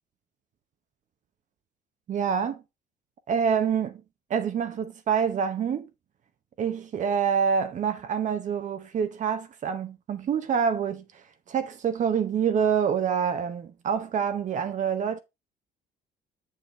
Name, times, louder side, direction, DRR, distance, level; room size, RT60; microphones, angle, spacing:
voice 1, 2.1-2.6 3.3-4.0 4.3-5.9 6.6-11.0 11.5-15.2, right 7 dB, 45° right, 0.8 m, -26 dB
6.6 x 6.4 x 3.2 m
cardioid pair, 110°, 17 cm